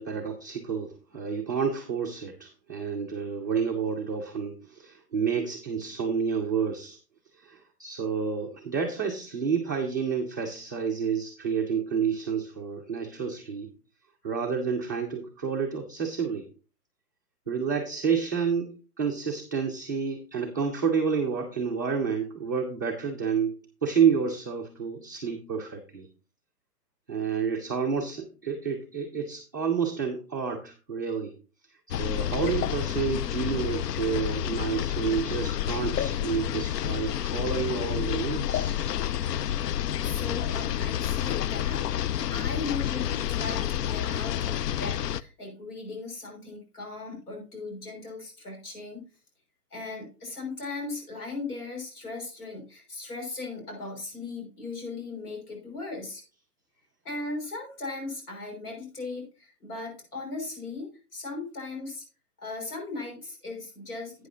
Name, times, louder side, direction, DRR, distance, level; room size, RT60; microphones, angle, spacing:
voice 1, 0.0-7.0 7.4-13.7 14.2-16.5 17.5-26.1 27.1-31.3 31.9-38.8, right 6 dB, 15° right, -5 dB, 0.6 m, -29 dB
sound 1, 31.9-45.2, left 11 dB, 85° left, 0.6 m, -29 dB
voice 2, 40.0-49.1 49.7-56.2 57.0-62.0 62.4-64.3, left 3 dB, 70° left, 1 dB, 6.0 m, -38 dB
11.5 x 8.9 x 2.8 m, 0.34 s
hypercardioid pair, 165°, 47 cm